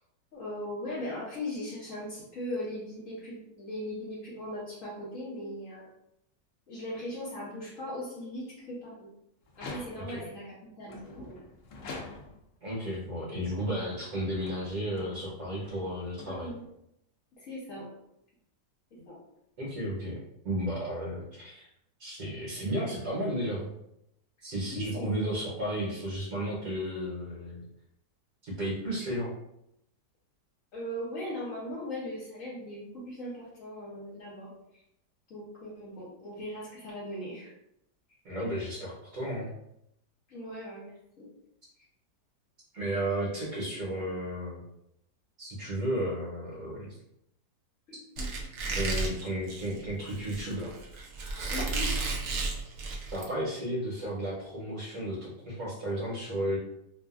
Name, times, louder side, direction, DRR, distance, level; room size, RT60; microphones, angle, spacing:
voice 1, 0.3-5.8 6.7-9.1 9.6-11.4 16.3-16.6 17.4-17.9 19.1-19.2 24.7-25.4 30.7-34.8 35.3-37.5 40.3-41.3 47.9-48.3 51.5-51.9, left 1 dB, 55° left, -7 dB, 1.2 m, -39 dB
sound 1, 9.5-10.3 10.9-12.6 13.2-16.8, left 3 dB, 85° left, 0.6 m, -46 dB
voice 2, 12.6-16.5 19.6-20.2 20.4-21.7 22.0-23.7 24.4-27.6 28.4-29.3 38.2-39.5 42.7-44.6 45.4-47.0 48.7-50.8 53.1-56.6, equal, 60° right, -7 dB, 1.3 m, -33 dB
Squeak, 48.2-53.2, right 3 dB, 80° right, 0.6 m, -33 dB
2.9 x 2.4 x 2.4 m, 0.79 s
omnidirectional pair, 1.9 m